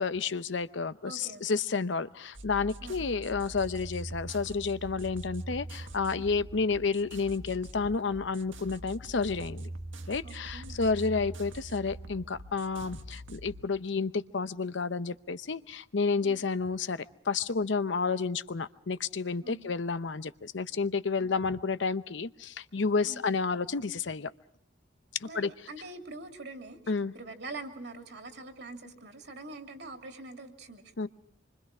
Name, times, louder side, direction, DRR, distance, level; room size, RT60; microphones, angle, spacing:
voice 1, 0.0-9.7 10.1-24.3 25.2-25.7 26.9-27.1 31.0-31.1, left 4 dB, 70° left, 13 dB, 0.8 m, -31 dB
voice 2, 1.0-1.4 2.8-3.0 10.2-10.9 16.2-16.4 19.4-19.7 21.2-21.3 23.0-23.2 25.3-26.8 27.1-30.8, right 2 dB, 65° right, 4 dB, 2.9 m, -44 dB
sound 1, 2.3-13.6, right 1 dB, 90° right, 1.6 m, -43 dB
26.5 x 24.5 x 4.9 m, 0.73 s
head